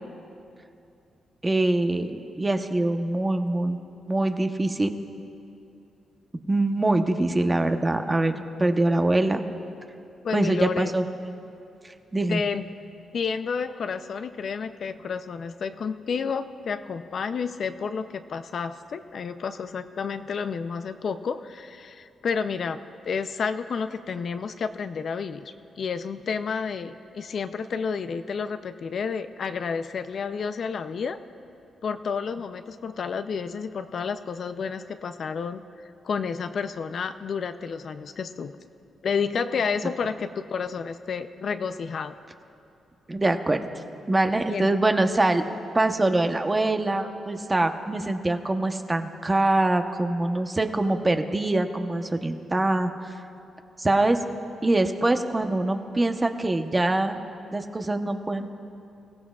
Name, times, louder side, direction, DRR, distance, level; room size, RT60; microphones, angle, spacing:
voice 1, 1.4-3.8 4.1-4.9 6.5-9.4 10.3-11.4 11.8-12.4 43.1-43.7 44.1-45.4 45.7-52.9 53.8-54.2 54.6-57.2 57.5-58.5, right 2 dB, 20° right, 6 dB, 0.9 m, -24 dB
voice 2, 10.2-10.9 12.3-12.8 13.1-22.8 23.1-31.2 31.8-38.5 39.0-42.1 44.5-44.7, left 5 dB, 60° left, 9 dB, 0.5 m, -30 dB
25.0 x 16.0 x 2.4 m, 2.7 s
cardioid pair, 85°, 0 cm